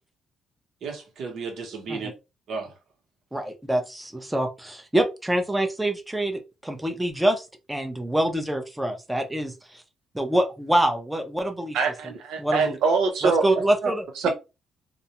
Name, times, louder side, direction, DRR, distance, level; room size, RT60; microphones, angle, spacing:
voice 1, 0.8-2.1 2.5-2.7 13.6-13.9, right 5 dB, 70° right, 0.9 m, -32 dB
voice 2, 3.3-9.8 10.1-11.8 12.4-12.8 13.2-14.0, right 1 dB, 10° right, 0.6 m, -25 dB
voice 3, 11.7-13.4 14.2-14.3, right 5 dB, 85° right, 0.5 m, -23 dB
2.3 x 2.0 x 2.9 m
cardioid pair, 90°, 0 cm